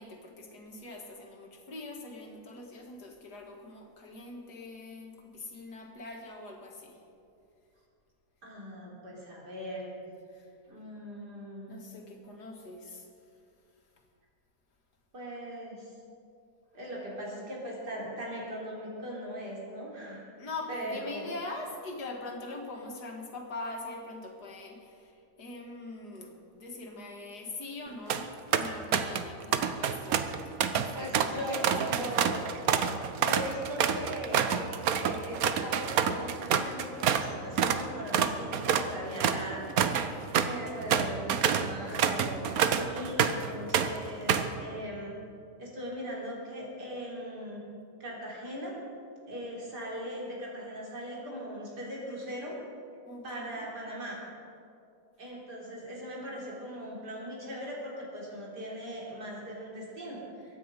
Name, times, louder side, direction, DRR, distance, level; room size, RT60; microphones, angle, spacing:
voice 1, 0.0-7.0 10.3-10.5 11.7-13.1 20.4-25.1 25.4-32.3 39.8-40.4 53.1-53.7, left 2 dB, 75° left, 1 dB, 2.4 m, -43 dB
voice 2, 8.4-9.9 10.6-11.9 15.1-16.0 16.7-20.2 20.7-21.3 31.0-32.4 33.2-39.6 40.3-45.2 45.6-47.6 48.0-48.8 49.2-52.6 53.2-54.2 55.2-60.6, equal, 85° right, -4 dB, 4.3 m, -39 dB
sound 1, 27.9-28.2 28.5-29.3 29.5-37.3 37.6-37.8 38.1-43.5 43.7-44.6, right 8 dB, 65° right, 1.2 m, -27 dB
23.5 x 9.7 x 5.3 m, 2.5 s
omnidirectional pair, 1.7 m